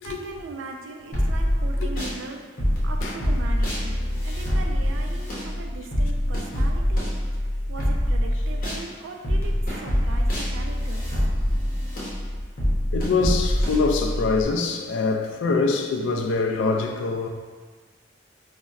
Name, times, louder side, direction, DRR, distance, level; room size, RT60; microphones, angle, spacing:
voice 1, 0.0-7.1 7.7-11.1, right 3 dB, 80° right, 3 dB, 0.4 m, -39 dB
sound 1, 1.1-2.2 2.6-8.8 9.2-14.5, equal, 50° left, 0.7 m, -24 dB
voice 2, 12.9-17.3, left 4 dB, 75° left, 3 dB, 0.3 m, -24 dB
4.0 x 2.1 x 2.3 m, 1.4 s
head